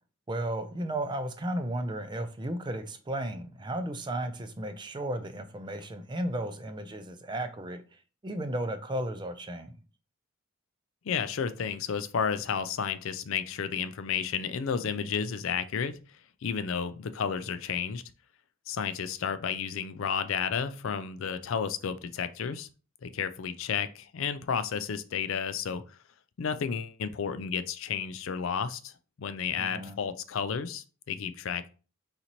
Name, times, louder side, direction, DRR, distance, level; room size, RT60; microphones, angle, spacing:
voice 1, 0.3-7.8 8.2-9.7 29.6-30.0, right 1 dB, 20° right, 0.4 m, -34 dB
voice 2, 11.1-16.0 16.4-18.0 18.7-22.7 23.0-25.8 26.4-28.9 29.2-31.7, left 6 dB, 65° left, 0.4 m, -32 dB
4.2 x 3.9 x 2.9 m
head